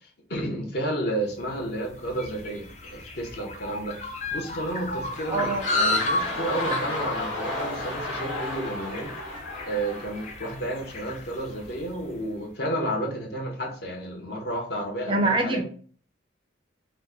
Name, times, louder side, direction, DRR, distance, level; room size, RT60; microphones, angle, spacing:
voice 1, 0.3-9.1 9.7-15.6, right 1 dB, 55° left, 0 dB, 0.7 m, -31 dB
sound 1, 1.5-12.1, left 2 dB, 35° left, 0.4 m, -33 dB
sound 2, 5.1-10.9 11.6-11.7, left 1 dB, 80° left, 1.2 m, -34 dB
voice 2, 5.3-5.7 15.1-15.6, right 2 dB, 25° right, 4 dB, 0.4 m, -24 dB
2.9 x 2.1 x 3.4 m, 0.44 s
head